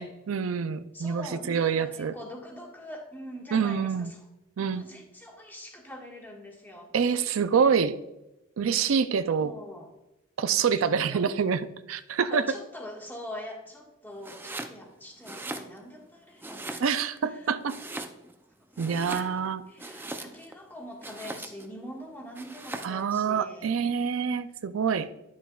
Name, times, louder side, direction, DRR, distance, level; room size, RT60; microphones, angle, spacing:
voice 1, 0.0-2.1 3.5-4.1 4.6-4.8 6.9-8.0 8.6-9.5 10.4-12.4 16.8-17.8 18.8-19.6 22.8-25.1, right 6 dB, 90° right, 12 dB, 0.4 m, -26 dB
voice 2, 0.9-4.2 4.7-6.9 9.4-9.9 10.8-11.3 12.2-16.9 17.3-17.5 18.8-23.7, equal, 10° left, 0 dB, 1.6 m, -43 dB
Domestic sounds home sounds, 14.2-14.8 15.2-16.1 16.4-17.2 17.7-18.4 18.7-20.6 21.0-21.7 22.4-23.0, right 2 dB, 10° right, 0.5 m, -39 dB
10.0 x 7.1 x 2.4 m, 0.93 s
head